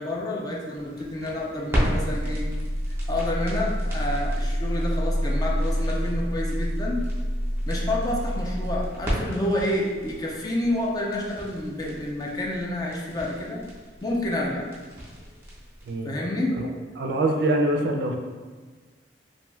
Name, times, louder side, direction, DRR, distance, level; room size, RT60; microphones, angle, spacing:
voice 1, 0.0-2.5 3.1-7.0 7.7-13.6 14.0-14.7 16.0-16.9, left 1 dB, 20° left, -2 dB, 0.4 m, -29 dB
sound 1, 0.7-15.9, equal, 15° right, 0.6 m, -29 dB
voice 2, 17.0-18.1, right 2 dB, 65° right, 3 dB, 0.3 m, -24 dB
2.6 x 2.3 x 3.1 m, 1.4 s
head